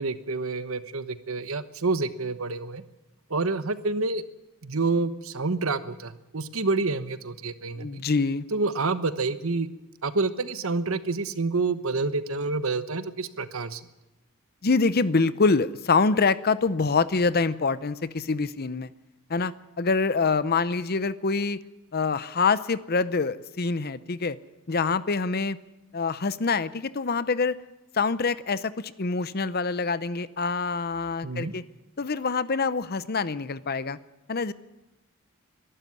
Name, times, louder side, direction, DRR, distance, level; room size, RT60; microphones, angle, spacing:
voice 1, 0.0-2.8 3.3-4.2 4.6-8.0 8.5-9.7 10.0-13.8 31.2-31.5, right 3 dB, 70° right, 12 dB, 1.1 m, -28 dB
voice 2, 7.7-8.4 14.6-18.9 19.3-21.6 21.9-24.4 24.7-25.6 25.9-27.6 27.9-31.6 32.0-34.0 34.3-34.5, left 4 dB, 45° left, 15 dB, 0.7 m, -25 dB
22.5 x 12.5 x 9.8 m, 0.99 s
head